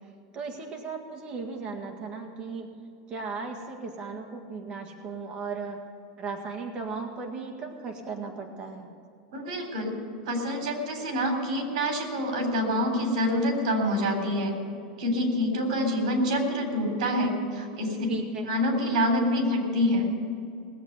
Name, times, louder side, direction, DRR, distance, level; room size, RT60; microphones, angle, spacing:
voice 1, 0.3-2.7 3.1-5.8 6.2-8.9 18.1-18.5, right 4 dB, 25° right, 2 dB, 1.8 m, -36 dB
voice 2, 9.3-9.9 10.3-14.5 15.0-18.0 18.5-20.1, equal, 70° right, 4 dB, 3.7 m, -26 dB
18.5 x 8.2 x 8.0 m, 2.4 s
supercardioid pair, 160°, 4 cm